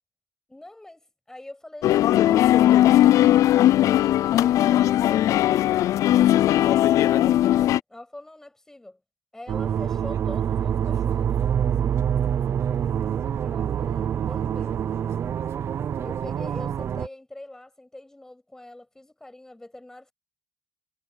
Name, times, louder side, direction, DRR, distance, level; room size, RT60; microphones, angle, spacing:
voice 1, 0.5-2.5 3.9-5.3 6.1-9.0 9.3-11.4 13.4-14.8 16.0-20.1, left 1 dB, 10° left, 7.1 m, -43 dB
sound 1, 1.8-7.8, left 13 dB, 70° left, 0.3 m, -18 dB
sound 2, 9.5-17.1, right 9 dB, 50° right, 0.6 m, -26 dB
cardioid pair, 130°, 6 cm